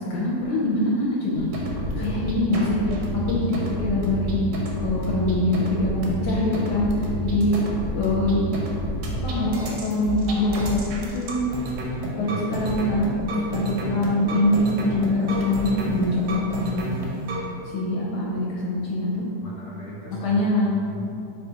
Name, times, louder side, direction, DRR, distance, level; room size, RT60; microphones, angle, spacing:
voice 1, 0.1-1.4 2.0-3.0 3.2-4.3 4.8-6.9 7.2-7.7 7.9-8.4 9.2-11.4 12.2-13.1 13.5-16.9 17.7-19.3 20.2-20.7, left 1 dB, 75° left, -5 dB, 1.1 m, -24 dB
sound 1, 1.3-17.4, equal, 85° right, 1.3 m, -29 dB
voice 2, 1.7-2.2 12.2-12.8 19.4-20.4 20.8-21.0, right 1 dB, 40° left, -6 dB, 1.0 m, -38 dB
4.2 x 2.4 x 3.8 m, 2.6 s
omnidirectional pair, 1.9 m